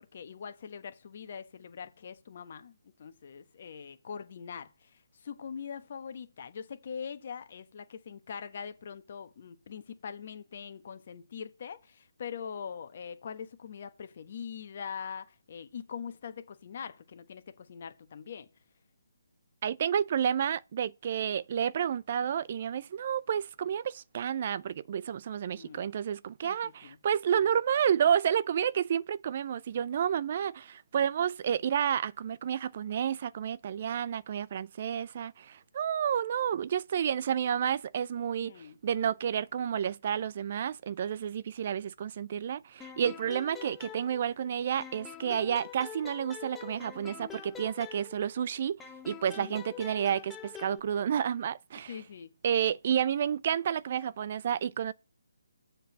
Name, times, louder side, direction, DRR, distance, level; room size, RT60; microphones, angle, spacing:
voice 1, 0.0-2.7 3.0-4.9 5.2-18.5 25.5-25.9 26.4-27.0 38.4-38.8 49.4-49.6 51.9-52.3, left 7 dB, 45° left, 1.2 m, -42 dB
voice 2, 19.6-48.8 49.1-52.0 52.4-54.9, right 8 dB, 40° right, 0.3 m, -30 dB
sound 1, 42.8-44.5 44.8-48.4 48.8-50.8, left 8 dB, 10° left, 0.7 m, -46 dB
7.4 x 4.5 x 7.0 m
hypercardioid pair, 155°, 0 cm